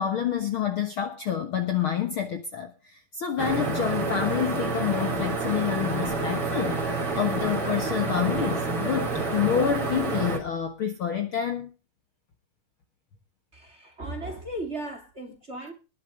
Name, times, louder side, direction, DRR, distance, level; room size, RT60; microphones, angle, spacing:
voice 1, 0.0-11.7, left 9 dB, 55° left, 1.7 m, -28 dB
sound 1, 3.4-10.4, right 3 dB, 45° right, 4.1 m, -28 dB
voice 2, 13.5-15.7, right 1 dB, 20° right, 2.7 m, -36 dB
20.5 x 7.0 x 4.9 m
omnidirectional pair, 3.6 m